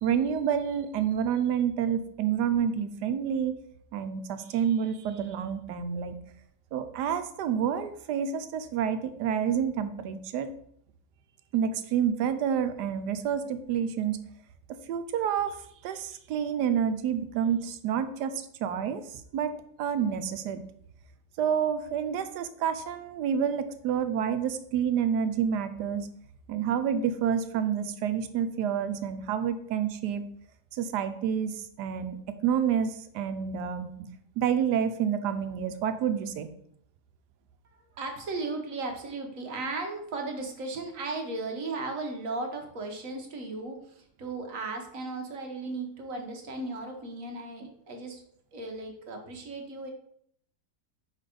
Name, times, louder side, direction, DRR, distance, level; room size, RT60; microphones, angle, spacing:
voice 1, 0.0-3.6 3.9-6.1 6.7-10.5 11.5-14.2 14.9-15.6 15.8-19.5 19.8-20.6 21.4-26.1 26.5-30.2 30.7-32.2 32.4-34.1 34.4-36.5, right 8 dB, 85° right, 10 dB, 1.2 m, -28 dB
voice 2, 37.9-48.2 48.5-49.9, right 3 dB, 55° right, 3 dB, 1.3 m, -36 dB
5.2 x 4.1 x 4.9 m, 0.68 s
omnidirectional pair, 1.8 m